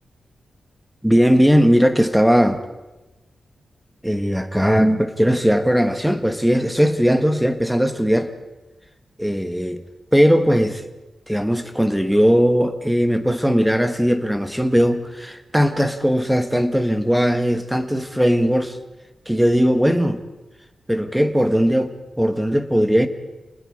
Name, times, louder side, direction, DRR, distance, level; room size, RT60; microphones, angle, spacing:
voice 1, 1.0-2.6 4.0-8.3 9.2-9.8 10.1-10.8 11.3-18.8 19.3-20.2 20.9-23.1, equal, 5° right, 8 dB, 1.6 m, -18 dB
28.5 x 20.0 x 4.9 m, 1.1 s
wide cardioid pair, 110°, 0 cm